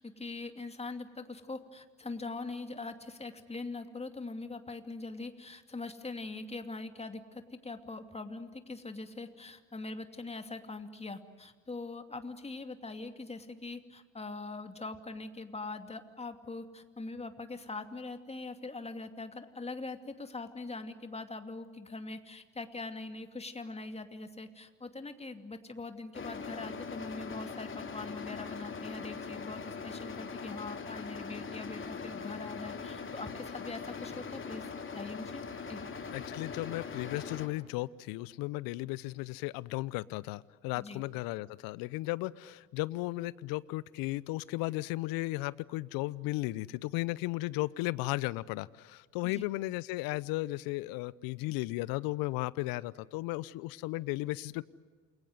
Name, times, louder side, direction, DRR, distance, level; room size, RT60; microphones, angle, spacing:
voice 1, 0.0-34.6 34.9-35.4 35.7-35.8 40.8-41.0 49.2-49.5, left 3 dB, 15° left, 7 dB, 2.6 m, -42 dB
sound 1, 26.1-37.5, left 5 dB, 30° left, 3.2 m, -41 dB
voice 2, 36.1-54.6, left 19 dB, 60° left, 20 dB, 0.8 m, -35 dB
29.0 x 22.5 x 8.0 m, 1.5 s
hypercardioid pair, 65°, 39 cm